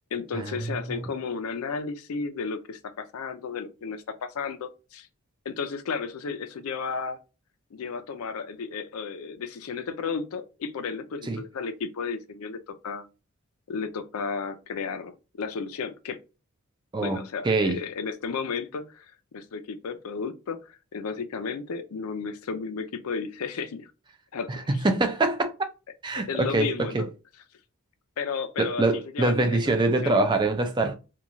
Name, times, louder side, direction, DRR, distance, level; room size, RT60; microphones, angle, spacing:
voice 1, 0.1-5.1 5.5-7.2 7.7-13.1 13.7-16.2 17.0-19.1 19.3-23.9 24.3-24.8 26.2-27.1 28.2-29.6 29.9-30.2, left 5 dB, 75° left, 0.4 m, -33 dB
voice 2, 16.9-17.8 24.5-24.6 24.8-25.5 26.0-27.0 28.6-31.0, right 2 dB, 20° right, 0.4 m, -24 dB
3.0 x 2.3 x 2.5 m
head